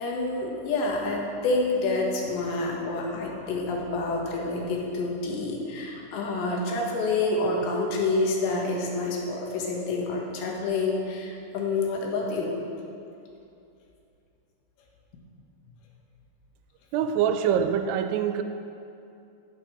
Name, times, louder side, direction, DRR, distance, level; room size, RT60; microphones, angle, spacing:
voice 1, 0.0-12.5, left 3 dB, 90° left, -1 dB, 3.7 m, -28 dB
voice 2, 16.9-18.4, right 8 dB, 85° right, 8 dB, 2.5 m, -24 dB
13.5 x 6.7 x 5.9 m, 2.6 s
omnidirectional pair, 4.9 m